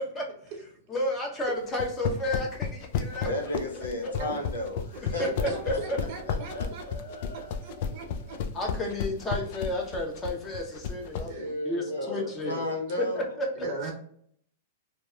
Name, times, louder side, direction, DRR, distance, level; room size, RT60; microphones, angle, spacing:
voice 1, 0.9-3.3 3.7-4.1 5.2-5.3 5.7-6.0 8.5-11.3 11.6-12.6 13.0-13.5, left 1 dB, 20° left, 0 dB, 0.8 m, -31 dB
sound 1, 1.7-11.3, left 7 dB, 55° left, 0.3 m, -32 dB
voice 2, 3.3-5.8 6.3-7.9 11.0-13.4, left 1 dB, 85° left, 1 dB, 0.7 m, -34 dB
voice 3, 4.9-6.8 7.6-8.4 11.2-11.5 11.9-12.5 12.9-13.0 13.6-13.9, right 3 dB, 55° right, 2 dB, 0.7 m, -39 dB
2.8 x 2.0 x 2.3 m, 0.64 s
hypercardioid pair, 115°, 0 cm